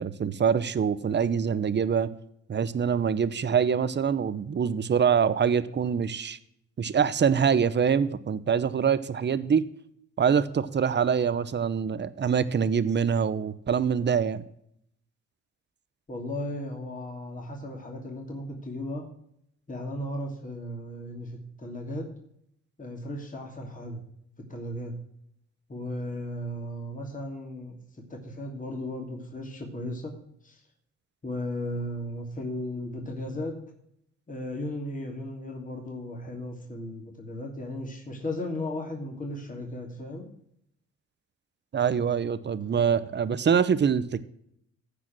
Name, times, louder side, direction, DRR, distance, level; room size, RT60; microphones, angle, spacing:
voice 1, 0.0-2.1 2.5-6.4 6.8-9.7 10.2-14.4 41.7-44.2, right 7 dB, 35° right, 15 dB, 0.9 m, -25 dB
voice 2, 16.1-19.1 19.7-22.1 22.8-24.0 24.4-25.0 25.7-30.1 30.4-30.6 31.2-33.6 34.3-40.3, left 1 dB, 25° left, 0 dB, 2.8 m, -36 dB
15.0 x 5.1 x 6.0 m, 0.72 s
cardioid pair, 90°, 30 cm